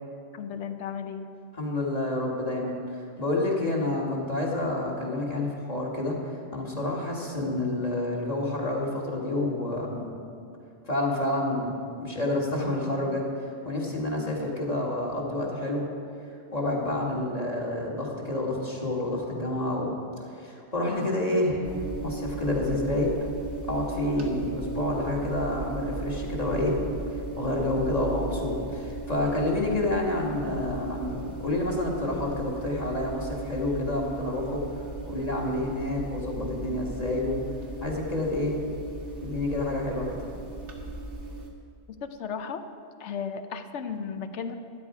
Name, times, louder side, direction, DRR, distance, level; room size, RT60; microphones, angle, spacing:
voice 1, 0.3-1.3 24.1-24.3 42.0-42.6 43.0-44.6, left 6 dB, 80° left, 8 dB, 1.0 m, -35 dB
voice 2, 1.5-6.2 6.5-10.1 10.8-11.7 12.0-13.3 13.7-15.9 16.5-20.0 20.3-23.1 23.7-26.8 27.1-34.6 35.1-37.4 37.8-38.6 39.2-40.3, left 1 dB, 35° left, -2 dB, 1.8 m, -29 dB
sound 1, 21.6-41.5, right 2 dB, 75° right, 1.6 m, -37 dB
13.0 x 9.8 x 4.8 m, 2.4 s
omnidirectional pair, 1.2 m